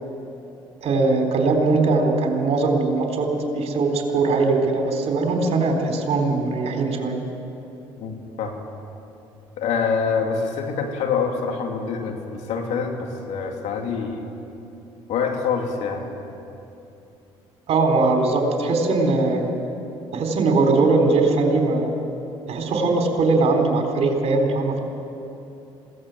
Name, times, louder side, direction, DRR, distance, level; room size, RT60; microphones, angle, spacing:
voice 1, 0.8-3.3 3.5-7.2 17.7-19.5 20.1-21.9 22.5-24.8, right 3 dB, 60° right, 3 dB, 3.9 m, -20 dB
voice 2, 8.0-8.6 9.6-14.3 15.1-16.1, left 5 dB, 70° left, 3 dB, 2.9 m, -26 dB
21.5 x 17.0 x 7.8 m, 2.8 s
supercardioid pair, 70°, 12 cm